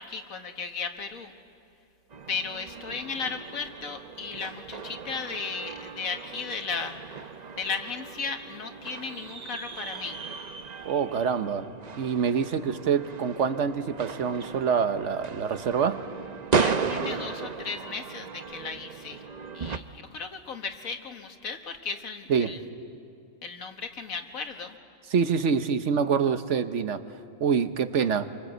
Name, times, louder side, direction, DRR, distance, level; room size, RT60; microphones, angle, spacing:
voice 1, 0.0-1.3 2.3-7.0 7.6-10.2 16.5-19.3 19.5-22.6 23.4-24.8, left 5 dB, 85° left, 5 dB, 1.9 m, -35 dB
sound 1, 2.1-19.8, right 5 dB, 40° right, 0.8 m, -35 dB
voice 2, 10.8-11.7 11.9-16.0 22.3-22.6 25.1-27.0 27.4-28.3, right 6 dB, 65° right, 10 dB, 1.3 m, -26 dB
28.0 x 24.0 x 8.0 m, 2.4 s
omnidirectional pair, 1.4 m